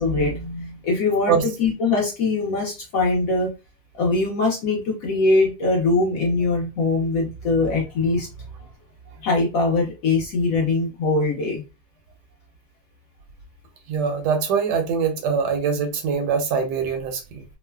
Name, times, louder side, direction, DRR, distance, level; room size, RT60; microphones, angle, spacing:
voice 1, 0.0-3.5 3.9-8.3 9.2-11.6, left 3 dB, 65° left, 0.9 m, -22 dB
voice 2, 13.9-17.4, right 6 dB, 75° right, 1.2 m, -23 dB
3.0 x 2.1 x 2.2 m
omnidirectional pair, 1.9 m